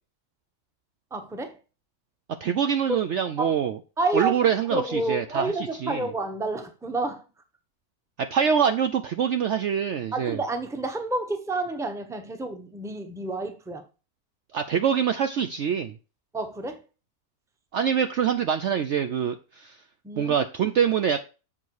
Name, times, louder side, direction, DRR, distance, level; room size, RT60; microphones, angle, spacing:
voice 1, 1.1-1.6 2.9-3.0 3.4-3.5 4.0-7.2 10.1-13.8 16.3-16.8 20.0-20.4, right 2 dB, 5° right, 0.7 m, -29 dB
voice 2, 2.4-3.8 4.1-5.5 5.8-6.1 8.2-10.4 14.5-15.9 17.7-19.8 20.2-21.2, right 8 dB, 65° right, 0.7 m, -25 dB
7.5 x 5.3 x 4.7 m
omnidirectional pair, 1.6 m